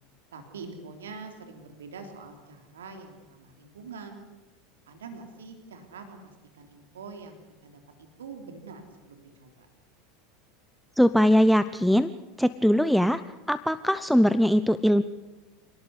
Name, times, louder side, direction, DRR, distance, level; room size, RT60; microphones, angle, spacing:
voice 1, 0.3-4.2 4.9-9.7, right 4 dB, 75° right, 5 dB, 3.4 m, -44 dB
voice 2, 11.0-12.1 12.4-13.2 13.5-15.0, equal, ahead, 13 dB, 0.8 m, -21 dB
27.5 x 18.5 x 8.3 m, 1.2 s
figure-of-eight pair, 80°, 0 cm